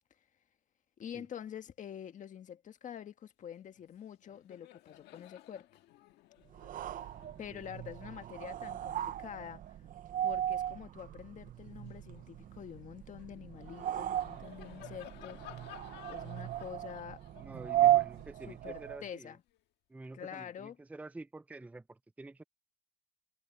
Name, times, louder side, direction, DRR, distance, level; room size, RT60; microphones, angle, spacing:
voice 1, 1.0-5.7 7.4-9.6 10.2-15.4 16.1-17.2 17.8-18.0 18.4-19.4 20.1-20.8, left 9 dB, 50° left, 1.6 m, -46 dB
Laughter, 3.7-3.9 4.2-10.9 11.4-19.6, left 15 dB, 85° left, 1.6 m, -57 dB
sound 1, 6.5-19.1, right 13 dB, 55° right, 0.6 m, -35 dB
voice 2, 7.1-7.6 17.4-19.4 19.9-22.4, right 2 dB, 10° right, 0.5 m, -49 dB
cardioid pair, 110°, 17 cm